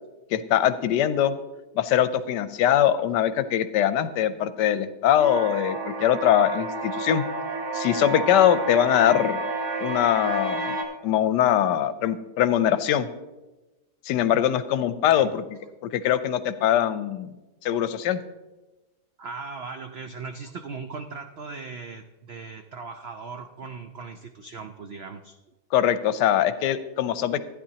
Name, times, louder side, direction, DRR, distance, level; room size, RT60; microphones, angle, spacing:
voice 1, 0.3-1.3 1.7-7.2 7.7-9.4 9.8-10.7 11.0-13.1 14.0-15.4 15.8-17.3 17.6-18.2 25.7-27.4, left 10 dB, 80° left, 13 dB, 1.2 m, -22 dB
sound 1, 5.2-10.8, right 2 dB, 60° right, 1.9 m, -30 dB
voice 2, 19.2-25.4, right 4 dB, 85° right, 6 dB, 0.5 m, -38 dB
15.0 x 10.0 x 2.8 m, 1.1 s
omnidirectional pair, 1.8 m